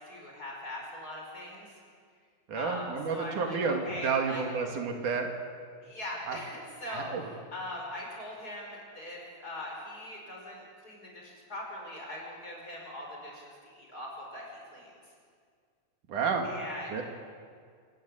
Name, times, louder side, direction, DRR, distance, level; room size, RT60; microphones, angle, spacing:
voice 1, 0.0-1.8 2.5-4.4 5.8-14.4 14.7-14.9 16.4-17.0, left 1 dB, 30° left, -1 dB, 6.0 m, -41 dB
voice 2, 2.5-5.3 6.3-6.4 6.9-7.2 16.1-16.5 16.9-17.0, right 5 dB, 90° right, 3 dB, 3.7 m, -30 dB
26.0 x 15.0 x 8.9 m, 2.1 s
omnidirectional pair, 3.5 m